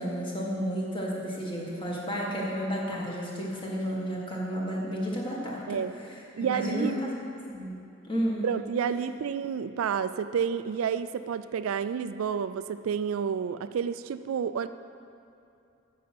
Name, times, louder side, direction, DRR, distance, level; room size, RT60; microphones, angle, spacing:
voice 1, 0.0-5.8 6.4-7.1 7.5-8.5, equal, 25° left, -4 dB, 1.7 m, -32 dB
voice 2, 6.4-7.0 8.4-14.7, right 7 dB, 75° right, 12 dB, 0.3 m, -30 dB
9.5 x 6.2 x 7.6 m, 2.6 s
head